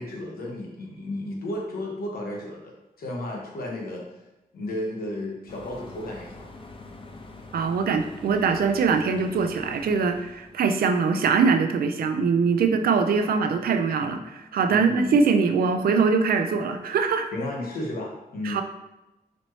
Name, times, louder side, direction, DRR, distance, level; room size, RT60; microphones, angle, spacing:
voice 1, 0.0-4.0 4.5-6.5 14.7-15.2 17.3-18.6, left 1 dB, 90° left, -1 dB, 0.9 m, -33 dB
sound 1, 5.5-10.6, left 3 dB, 35° left, 0.5 m, -44 dB
voice 2, 7.5-17.3 18.4-18.6, right 5 dB, 85° right, 6 dB, 0.4 m, -22 dB
4.0 x 3.0 x 3.1 m, 0.98 s
cardioid pair, 80°, 15 cm